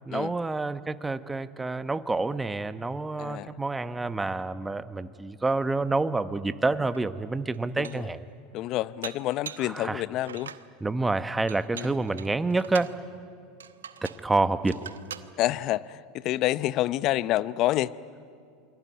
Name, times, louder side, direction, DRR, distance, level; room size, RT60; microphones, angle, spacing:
voice 1, 0.0-8.2 9.6-10.0 10.8-12.9 14.0-14.8, right 3 dB, 15° right, 12 dB, 1.1 m, -28 dB
voice 2, 3.2-3.5 7.8-8.1 8.5-10.5 11.7-11.9 15.4-17.9, left 15 dB, 50° left, 18 dB, 0.7 m, -28 dB
Dishes pots and pans, 6.9-7.0 7.5-8.1 9.0-9.7 10.2-10.7 11.5-13.0 13.6-14.3 14.6-15.3, right 8 dB, 90° right, 0.9 m, -42 dB
28.0 x 22.5 x 9.4 m, 2.4 s
hypercardioid pair, 90°, 0 cm